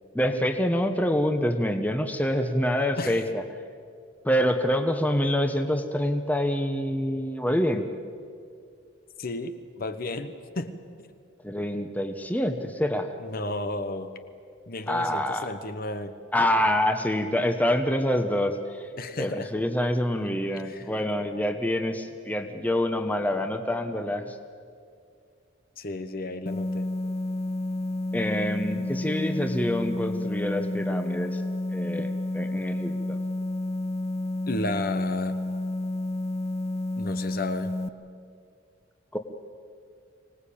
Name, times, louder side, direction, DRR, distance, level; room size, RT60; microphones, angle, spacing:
voice 1, 0.1-3.4 4.2-7.9 11.4-13.1 14.9-15.5 16.3-18.9 19.2-24.3 28.1-31.4 31.7-32.1 32.3-33.2 39.1-39.2, equal, 10° left, 6 dB, 1.1 m, -26 dB
voice 2, 3.0-3.3 9.2-11.1 13.2-14.1 14.7-16.1 19.0-19.5 20.5-20.9 25.8-26.9 34.5-35.4 37.0-37.7, left 2 dB, 50° left, 9 dB, 1.1 m, -33 dB
sound 1, 26.5-37.9, left 1 dB, 30° left, 0.7 m, -30 dB
24.5 x 19.0 x 8.7 m, 2.3 s
head